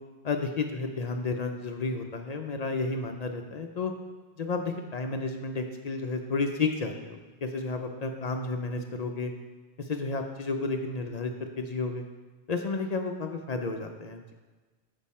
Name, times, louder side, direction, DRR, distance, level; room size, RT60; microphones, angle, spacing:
voice 1, 0.2-3.9 4.4-9.3 9.8-11.3 11.6-12.0 12.5-14.3, left 3 dB, 55° left, 4 dB, 0.5 m, -32 dB
7.2 x 5.2 x 4.2 m, 1.3 s
omnidirectional pair, 1.1 m